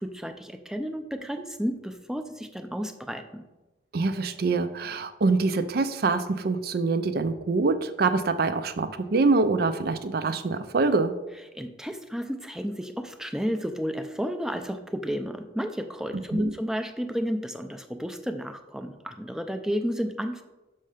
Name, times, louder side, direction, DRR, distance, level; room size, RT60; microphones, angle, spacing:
voice 1, 0.0-3.4 11.5-20.4, equal, 5° right, 7 dB, 0.5 m, -32 dB
voice 2, 3.9-11.1 16.3-16.5, right 3 dB, 55° right, 11 dB, 0.5 m, -25 dB
6.4 x 5.6 x 5.0 m, 1.1 s
head